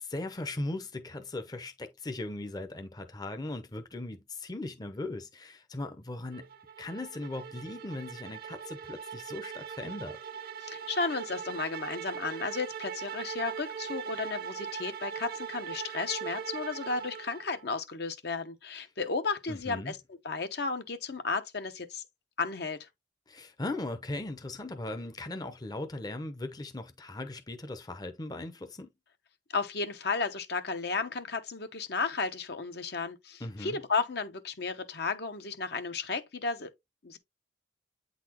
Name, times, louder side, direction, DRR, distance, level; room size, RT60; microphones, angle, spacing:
voice 1, 0.0-6.5 6.8-10.2 19.5-19.9 23.3-28.9 33.4-33.8, left 2 dB, 20° left, 0.7 m, -38 dB
sound 1, 6.3-17.7, right 7 dB, 55° right, 0.7 m, -40 dB
voice 2, 10.6-22.0 22.4-22.9 29.5-36.7 37.0-37.2, left 4 dB, 65° left, 0.9 m, -33 dB
8.4 x 4.1 x 2.9 m
head